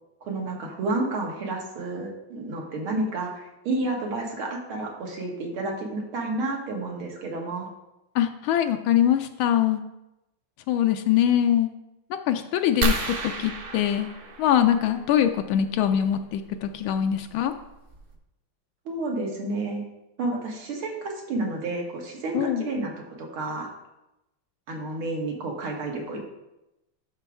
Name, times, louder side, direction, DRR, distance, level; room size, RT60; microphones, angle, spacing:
voice 1, 0.2-7.7 18.9-19.8 20.2-23.7 24.7-26.2, right 2 dB, 85° right, 0 dB, 2.4 m, -30 dB
voice 2, 8.1-9.8 10.7-11.7 12.3-14.1 14.4-17.5 22.3-22.6, left 10 dB, 80° left, 6 dB, 1.4 m, -23 dB
sound 1, 12.8-15.2 16.8-17.0 17.6-17.7 17.9-18.2, right 2 dB, 50° right, 1.0 m, -30 dB
11.5 x 6.0 x 3.5 m, 0.94 s
omnidirectional pair, 2.3 m